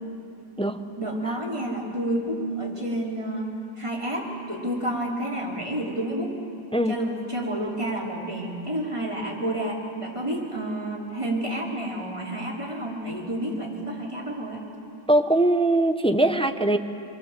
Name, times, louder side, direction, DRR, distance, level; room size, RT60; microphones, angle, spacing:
voice 1, 1.0-6.4 6.9-14.6, right 1 dB, 20° right, -3 dB, 4.2 m, -30 dB
voice 2, 15.1-16.8, right 1 dB, 5° left, 7 dB, 0.7 m, -21 dB
27.0 x 23.5 x 7.6 m, 2.6 s
omnidirectional pair, 1.6 m